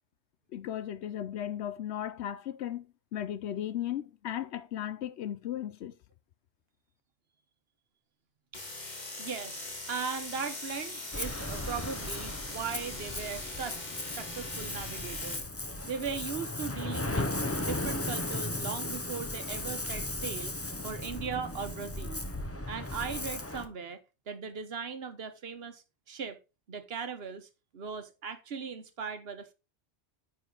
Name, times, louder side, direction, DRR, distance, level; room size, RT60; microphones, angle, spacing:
voice 1, 0.5-2.9 3.1-5.9, left 11 dB, 80° left, 0.9 m, -36 dB
sound 1, 8.5-15.4, left 2 dB, 40° left, 2.0 m, -41 dB
voice 2, 9.2-15.4 15.9-17.3 17.6-20.5 20.8-22.2 22.7-26.4 26.7-27.5 27.7-29.5, right 6 dB, 65° right, 1.2 m, -38 dB
Ocean, 11.1-23.7, left 2 dB, 15° left, 0.7 m, -36 dB
9.4 x 4.9 x 3.8 m
omnidirectional pair, 1.1 m